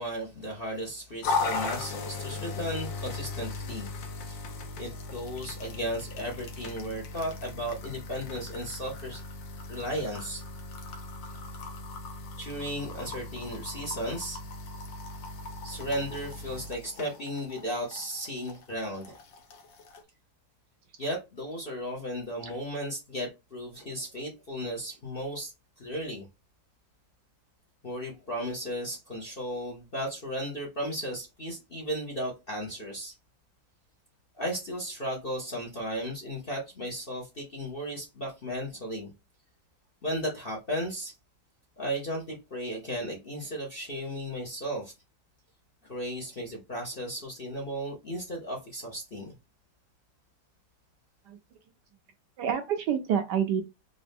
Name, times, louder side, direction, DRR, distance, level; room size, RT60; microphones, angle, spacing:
voice 1, 0.0-3.9 4.2-4.5 4.8-9.2 9.7-10.4 12.4-14.4 15.6-19.2 21.0-26.3 27.8-33.1 34.4-39.1 40.0-41.1 41.8-44.9 45.8-49.3, equal, 45° left, 0.8 m, -35 dB
sound 1, 1.2-20.0, left 3 dB, 75° left, 1.5 m, -38 dB
voice 2, 52.4-53.6, right 8 dB, 70° right, 1.0 m, -28 dB
3.9 x 2.6 x 3.4 m
omnidirectional pair, 2.1 m